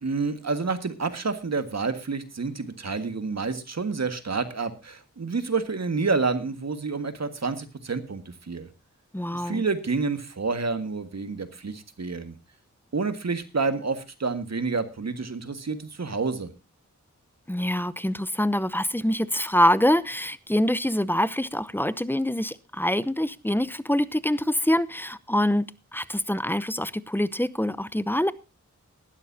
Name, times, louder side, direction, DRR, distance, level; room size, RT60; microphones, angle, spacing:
voice 1, 0.0-8.7 9.3-12.4 12.9-16.5, right 4 dB, 60° right, 10 dB, 1.7 m, -29 dB
voice 2, 9.1-9.6 17.5-25.7 25.9-28.3, left 1 dB, 5° left, 15 dB, 0.8 m, -25 dB
19.0 x 12.0 x 2.7 m, 0.28 s
wide cardioid pair, 65°, 30 cm